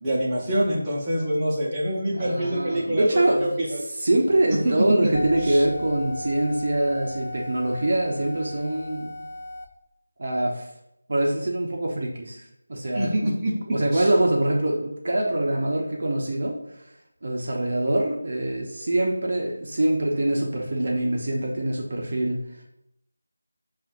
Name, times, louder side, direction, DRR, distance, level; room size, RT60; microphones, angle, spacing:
voice 1, 0.0-3.8 4.6-5.0 5.4-5.6 12.9-13.5 13.9-14.1, right 1 dB, 10° right, -9 dB, 1.0 m, -25 dB
voice 2, 2.1-9.1 10.2-10.7 11.1-13.3 13.7-16.6 17.2-22.4, right 1 dB, 50° right, 0 dB, 0.7 m, -24 dB
sound 1, 5.1-9.7, left 1 dB, 45° left, 0.6 m, -35 dB
6.9 x 2.5 x 2.5 m, 0.82 s
figure-of-eight pair, 170°, 0 cm